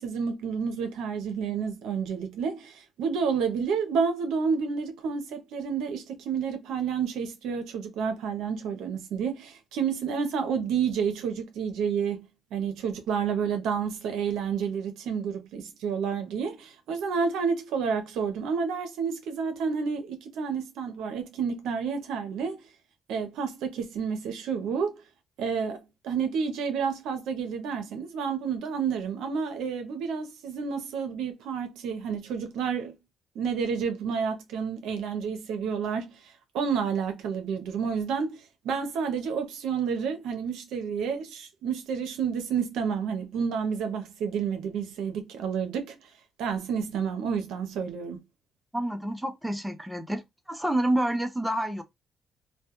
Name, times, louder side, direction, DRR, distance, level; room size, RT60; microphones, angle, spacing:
voice 1, 0.0-12.3 12.5-22.6 23.1-25.0 25.4-32.9 33.3-46.0 46.4-48.2, right 6 dB, 85° right, 0.6 m, -30 dB
voice 2, 48.7-50.2 50.5-51.8, right 1 dB, 5° right, 0.5 m, -28 dB
2.2 x 2.1 x 2.8 m
cardioid pair, 90°, 0 cm